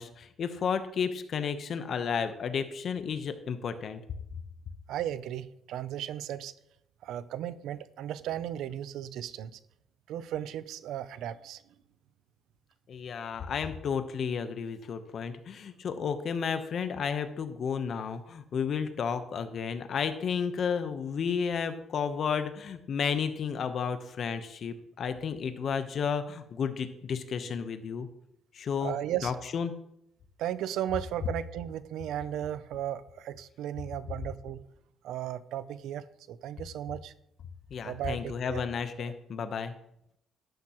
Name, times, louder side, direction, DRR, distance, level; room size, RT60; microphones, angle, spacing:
voice 1, 0.0-4.0 12.9-28.1 28.5-28.9 29.2-29.7 37.7-39.7, left 6 dB, 60° left, 9 dB, 1.0 m, -32 dB
voice 2, 4.9-6.5 7.0-9.6 10.1-11.6 28.8-29.3 30.4-34.6 35.0-37.1 37.9-38.6 39.0-39.1, right 11 dB, 85° right, 15 dB, 0.5 m, -35 dB
11.5 x 10.5 x 3.1 m, 0.76 s
cardioid pair, 90°, 0 cm